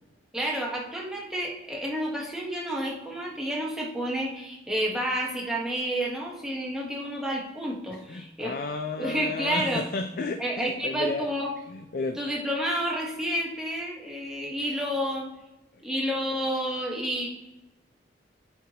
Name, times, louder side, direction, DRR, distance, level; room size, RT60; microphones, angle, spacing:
voice 1, 0.3-8.5 9.0-9.8 10.4-11.5 12.2-15.3 15.8-17.3, equal, 5° right, -3 dB, 1.0 m, -30 dB
voice 2, 8.1-11.3 11.7-12.2, left 3 dB, 50° left, 6 dB, 0.4 m, -32 dB
10.5 x 4.4 x 2.9 m, 1.0 s
head